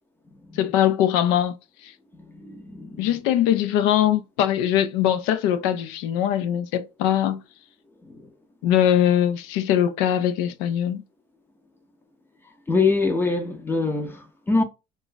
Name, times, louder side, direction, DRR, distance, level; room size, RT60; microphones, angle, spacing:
voice 1, 0.5-1.5 1.8-1.9 3.0-7.4 8.6-11.0, left 10 dB, 80° left, 0.5 m, -21 dB
voice 2, 2.2-3.2 8.0-8.3 12.7-14.6, left 3 dB, 10° left, 0.5 m, -24 dB
2.4 x 2.3 x 3.7 m
cardioid pair, 145°, 19 cm